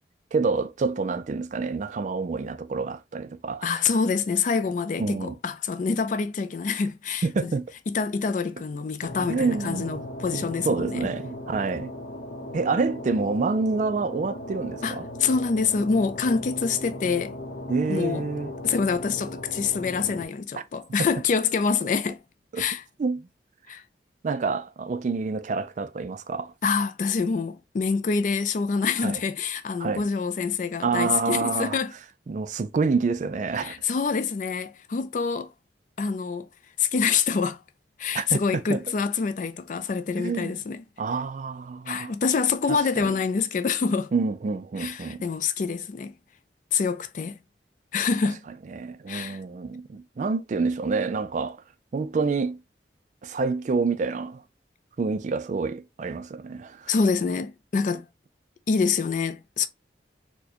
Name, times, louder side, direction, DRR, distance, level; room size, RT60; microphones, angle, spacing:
voice 1, 0.3-3.8 5.0-5.3 7.2-7.7 9.3-10.0 10.3-11.9 12.5-15.1 17.7-18.5 20.5-20.6 22.5-22.7 23.0-23.3 24.2-26.5 29.0-29.2 29.8-30.1 30.8-31.8 32.3-33.7 38.1-38.8 40.2-40.6 41.0-42.1 42.7-43.1 44.1-45.2 48.7-51.6 51.9-52.6 53.2-54.4 55.0-56.9, right 4 dB, 45° right, 0.3 m, -27 dB
voice 2, 3.6-7.5 7.9-11.1 14.8-17.3 17.9-18.2 18.6-22.2 22.6-22.8 23.7-23.8 26.6-31.9 33.6-35.5 36.0-36.5 36.8-37.6 38.0-40.8 41.9-44.1 44.8-46.1 46.7-47.4 47.9-48.4 49.1-49.4 56.9-58.1 58.7-59.7, left 5 dB, 45° left, 0.4 m, -26 dB
sound 1, 9.0-20.3, left 1 dB, 60° left, 0.9 m, -37 dB
4.3 x 2.2 x 2.8 m
head